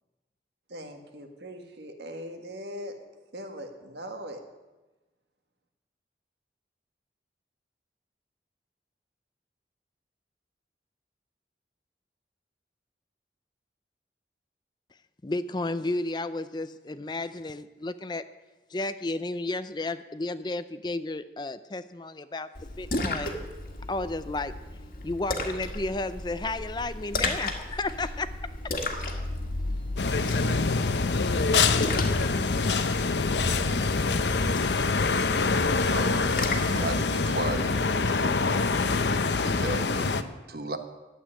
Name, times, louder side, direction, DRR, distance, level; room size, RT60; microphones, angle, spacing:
voice 1, 0.7-3.0 3.3-4.5, equal, 75° right, 4 dB, 1.8 m, -40 dB
voice 2, 15.2-18.2 18.7-23.4 23.9-24.5 25.0-28.3, left 2 dB, 25° left, 13 dB, 0.4 m, -32 dB
Splash splatter, 22.5-36.8, left 2 dB, 55° left, 1.7 m, -34 dB
sound 1, 25.6-32.3, equal, 30° right, 1.3 m, -47 dB
sound 2, 30.0-40.2, left 4 dB, 85° left, 0.7 m, -25 dB
voice 3, 35.9-40.8, right 2 dB, 60° right, 8 dB, 1.2 m, -36 dB
12.5 x 8.5 x 10.0 m, 1.2 s
head